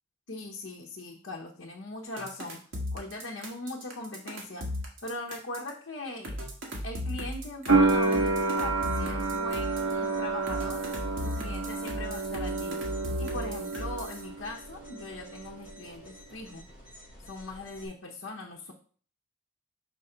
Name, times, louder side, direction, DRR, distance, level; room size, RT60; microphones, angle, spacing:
voice 1, 0.3-2.6 2.9-4.7 5.0-6.3 6.8-10.8 11.2-12.8 13.2-16.7 17.2-18.7, left 2 dB, 70° left, -2 dB, 0.8 m, -39 dB
sound 1, 2.2-5.7 6.2-9.9 10.5-14.2, left 1 dB, 70° right, 1.6 m, -36 dB
sound 2, 7.7-14.5 14.7-15.6, right 3 dB, 90° right, 0.7 m, -29 dB
sound 3, 7.8-17.9, equal, 10° right, 3.3 m, -51 dB
5.6 x 5.2 x 3.8 m, 0.43 s
head